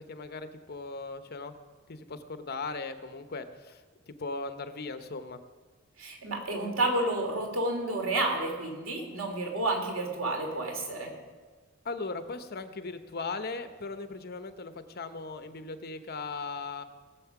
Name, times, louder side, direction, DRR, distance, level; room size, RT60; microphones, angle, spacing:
voice 1, 0.0-1.5 1.9-5.4 11.8-16.8, left 3 dB, 50° left, 10 dB, 0.9 m, -38 dB
voice 2, 6.0-11.1, right 2 dB, 85° right, 2 dB, 2.9 m, -30 dB
19.0 x 7.3 x 5.9 m, 1.5 s
head